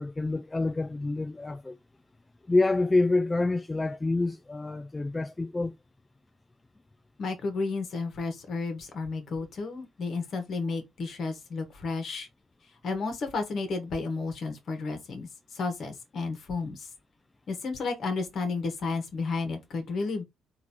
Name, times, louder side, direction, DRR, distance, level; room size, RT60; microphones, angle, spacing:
voice 1, 0.0-1.8 2.5-5.7, left 2 dB, 20° left, 0.4 m, -27 dB
voice 2, 7.2-12.3 12.8-16.9 17.5-20.2, left 4 dB, 60° left, 1.5 m, -32 dB
3.9 x 2.8 x 4.2 m
hypercardioid pair, 45°, 0 cm